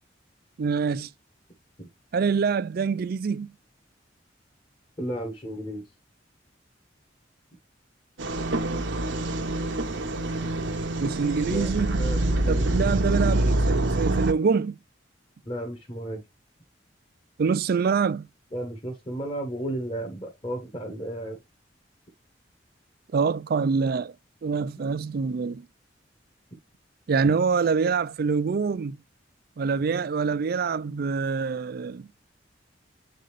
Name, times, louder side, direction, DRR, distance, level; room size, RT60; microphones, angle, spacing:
voice 1, 0.6-1.1 2.1-3.5 11.0-12.0 12.5-14.8 17.4-18.3 23.1-24.1 24.4-25.6 27.1-29.0 29.6-32.1, right 5 dB, 55° right, 0.4 m, -25 dB
voice 2, 5.0-5.9 11.5-13.4 15.4-16.2 18.5-21.4, right 1 dB, 30° left, 1.3 m, -34 dB
sound 1, 8.2-14.3, right 1 dB, 70° right, 0.9 m, -25 dB
7.7 x 3.9 x 3.2 m
head